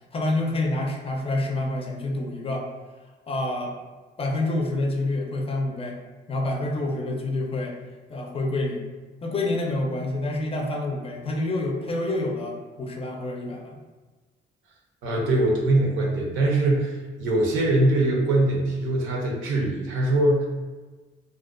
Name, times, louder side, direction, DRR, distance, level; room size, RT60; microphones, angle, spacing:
voice 1, 0.1-2.7 3.3-3.8 4.2-6.0 6.3-7.8 8.1-8.9 9.2-13.8, left 2 dB, 30° left, 1 dB, 0.4 m, -27 dB
voice 2, 15.0-20.5, right 1 dB, 85° right, -1 dB, 0.6 m, -22 dB
2.4 x 2.2 x 2.4 m, 1.3 s
cardioid pair, 90°, 20 cm